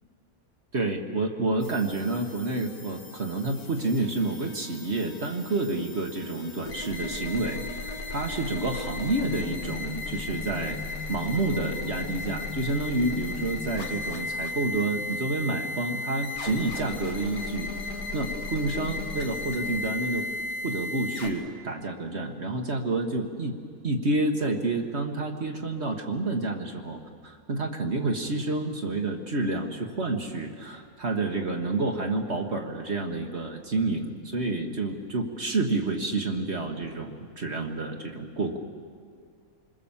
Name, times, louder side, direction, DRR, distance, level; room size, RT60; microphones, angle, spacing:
voice 1, 0.7-10.8 11.1-20.3 20.6-23.6 23.8-38.6, right 2 dB, 50° right, 2 dB, 1.6 m, -29 dB
sound 1, 1.6-21.3, left 3 dB, 85° left, 2.3 m, -35 dB
27.5 x 21.0 x 7.3 m, 2.1 s
omnidirectional pair, 1.5 m